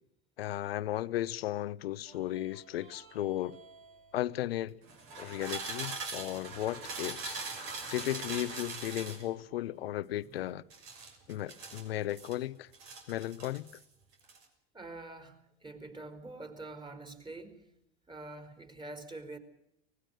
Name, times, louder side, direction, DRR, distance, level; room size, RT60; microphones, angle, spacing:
voice 1, 0.4-3.6 4.1-4.7 5.2-7.4 7.9-10.6 11.3-12.7 13.1-13.7, left 14 dB, 85° left, 0.9 m, -35 dB
sound 1, 2.1-4.0 4.8-9.3 10.7-12.4 12.7-13.8 14.1-14.4, right 4 dB, 65° right, 6.2 m, -42 dB
voice 2, 14.7-17.6 18.1-19.4, right 2 dB, 15° right, 4.3 m, -45 dB
24.0 x 20.0 x 6.4 m
hypercardioid pair, 85°, 29 cm